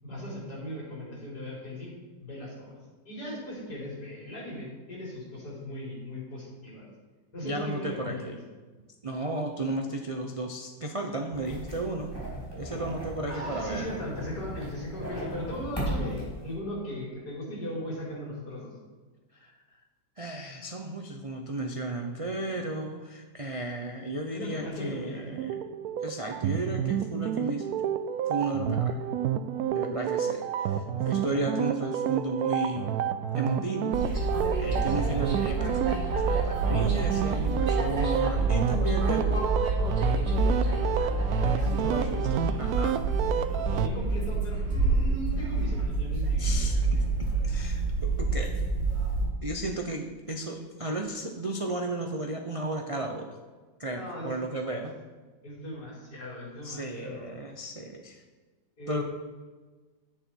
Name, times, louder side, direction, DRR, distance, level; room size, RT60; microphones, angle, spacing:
voice 1, 0.0-2.8 3.0-6.9 7.3-8.4 12.6-12.9 13.3-18.7 24.3-25.3 40.5-41.1 41.4-42.6 43.5-46.7 53.9-54.6 55.4-57.3 58.8-59.0, left 1 dB, 70° left, -5 dB, 4.7 m, -38 dB
voice 2, 7.4-8.4 9.0-12.1 12.5-13.9 17.5-17.6 19.3-19.5 20.2-25.5 26.0-27.7 28.3-29.0 29.7-32.9 33.3-34.0 34.6-35.7 36.2-39.5 41.7-43.0 46.4-47.0 47.4-48.5 49.4-53.3 53.8-54.9 56.6-58.2 58.9-59.0, right 2 dB, 35° right, 2 dB, 0.5 m, -34 dB
sound 1, 11.3-16.5, right 1 dB, 15° left, 3.6 m, -37 dB
sound 2, 25.3-43.9, right 9 dB, 70° right, 1.0 m, -30 dB
sound 3, 33.9-49.3, right 3 dB, 85° right, 3.6 m, -27 dB
10.5 x 9.6 x 4.6 m, 1.3 s
omnidirectional pair, 1.8 m